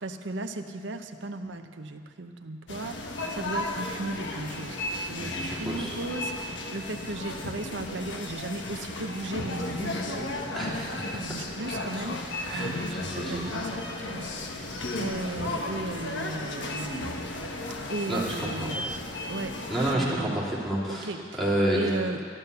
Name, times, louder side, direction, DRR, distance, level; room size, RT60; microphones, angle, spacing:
voice 1, 0.0-4.8 5.1-10.4 11.1-12.2 12.5-13.8 14.1-14.3 14.6-17.2 17.9-18.9 19.3-19.5 19.9-20.5 20.9-21.2 21.7-22.2, right 2 dB, 75° right, 6 dB, 0.8 m, -36 dB
sound 1, 2.7-19.9, left 2 dB, 75° left, 1.2 m, -34 dB
voice 2, 5.2-6.0 10.5-11.2 12.4-13.5 18.1-18.7 19.7-21.1 21.4-21.9, right 1 dB, ahead, -7 dB, 2.9 m, -29 dB
12.0 x 11.5 x 6.9 m, 2.2 s
head